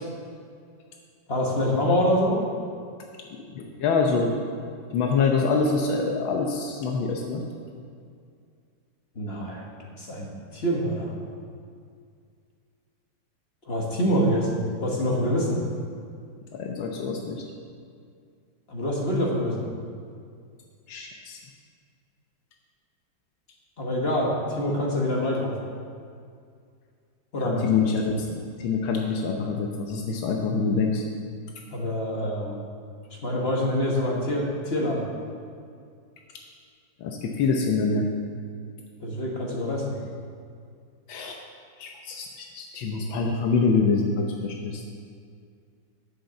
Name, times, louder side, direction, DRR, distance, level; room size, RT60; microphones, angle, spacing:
voice 1, 1.3-2.4 9.1-9.6 10.0-11.1 13.7-15.6 18.7-19.7 23.8-25.6 27.3-27.7 31.7-32.6 33.2-35.1 39.0-40.0, equal, 35° left, -2 dB, 1.4 m, -25 dB
voice 2, 3.5-4.3 4.9-7.4 16.5-17.4 20.9-21.4 27.4-31.0 37.0-38.1 41.1-41.4 41.8-44.8, left 4 dB, 85° left, 1 dB, 1.6 m, -25 dB
8.2 x 6.7 x 6.9 m, 2.3 s
omnidirectional pair, 2.1 m